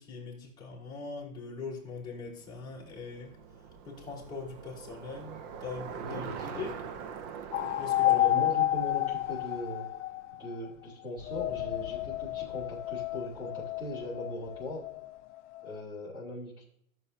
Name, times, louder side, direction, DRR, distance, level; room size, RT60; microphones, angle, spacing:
voice 1, 0.0-6.7 7.8-8.4, left 4 dB, 10° left, -6 dB, 3.9 m, -42 dB
Bicycle, 2.1-10.5, right 7 dB, 30° right, 0.6 m, -44 dB
voice 2, 5.9-6.6 8.0-9.9 10.4-14.8 15.6-16.6, left 1 dB, 10° right, -5 dB, 3.9 m, -39 dB
sound 1, 7.5-10.7 11.2-15.8, left 15 dB, 60° left, 0.6 m, -31 dB
14.5 x 7.9 x 2.8 m, 0.68 s
hypercardioid pair, 150°, 42 cm